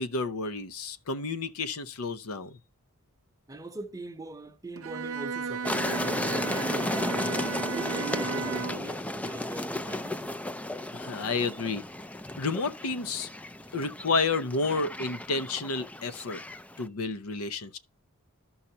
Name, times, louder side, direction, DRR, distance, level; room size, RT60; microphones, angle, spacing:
voice 1, 0.0-2.6 10.9-11.8 12.4-13.3 13.7-16.4 16.8-17.8, left 3 dB, 70° left, 0.7 m, -30 dB
voice 2, 3.5-7.4 7.7-10.4, right 2 dB, 15° right, 0.8 m, -41 dB
Bowed string instrument, 4.8-8.9, right 5 dB, 65° right, 0.7 m, -34 dB
sound 1, 5.6-16.9, left 1 dB, 5° left, 0.4 m, -34 dB
13.0 x 5.6 x 2.8 m
head